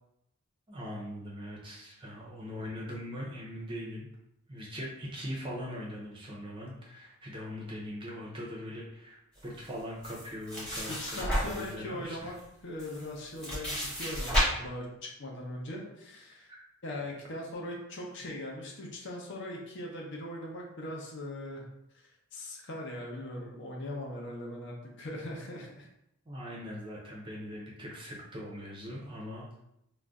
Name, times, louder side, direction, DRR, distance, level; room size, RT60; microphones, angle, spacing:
voice 1, 0.7-4.1 4.5-12.3 16.5-16.6 26.3-29.6, equal, 20° right, -3 dB, 0.5 m, -41 dB
sound 1, 10.0-11.7 12.4-12.5 12.8-14.4, equal, 5° left, 0.8 m, -32 dB
voice 2, 11.0-12.3 12.6-16.5 16.8-21.6 22.3-25.9, left 1 dB, 50° left, -1 dB, 0.6 m, -40 dB
2.4 x 2.1 x 3.5 m, 0.82 s
head